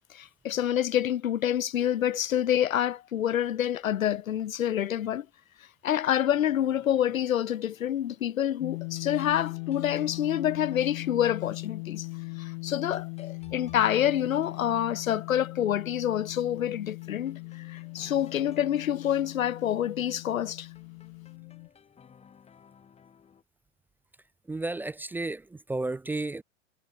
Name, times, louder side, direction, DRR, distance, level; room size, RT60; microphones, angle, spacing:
voice 1, 0.1-5.3 5.8-12.1 12.4-20.7, left 10 dB, 85° left, 1.3 m, -27 dB
sound 1, 6.3-23.4, left 7 dB, 15° left, 4.7 m, -58 dB
sound 2, 8.6-21.7, left 30 dB, 35° left, 0.7 m, -39 dB
voice 2, 24.5-26.4, right 2 dB, 5° right, 0.6 m, -32 dB
hypercardioid pair, 135°, 40 cm